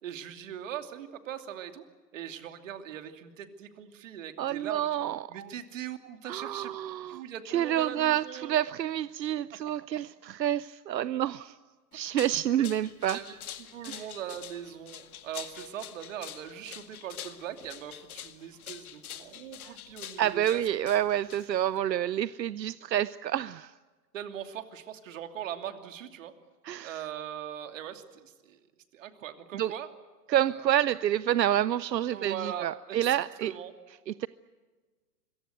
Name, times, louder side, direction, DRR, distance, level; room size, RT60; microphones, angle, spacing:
voice 1, 0.0-1.8 2.1-4.9 5.3-6.7 7.1-8.6 11.9-12.0 12.6-13.4 13.7-20.6 24.1-26.3 26.8-28.6 28.9-29.9 30.3-30.7 32.1-33.7, right 9 dB, 50° right, 7 dB, 2.8 m, -40 dB
voice 2, 4.4-5.5 6.3-11.6 11.9-13.2 13.9-14.0 19.6-19.8 20.2-23.7 26.6-27.0 29.5-29.7 30.3-33.5 34.1-34.3, right 11 dB, 80° right, 17 dB, 0.8 m, -28 dB
sound 1, 11.9-21.8, left 10 dB, 60° left, 2.1 m, -45 dB
26.0 x 22.5 x 8.0 m, 1.4 s
hypercardioid pair, 155°, 50 cm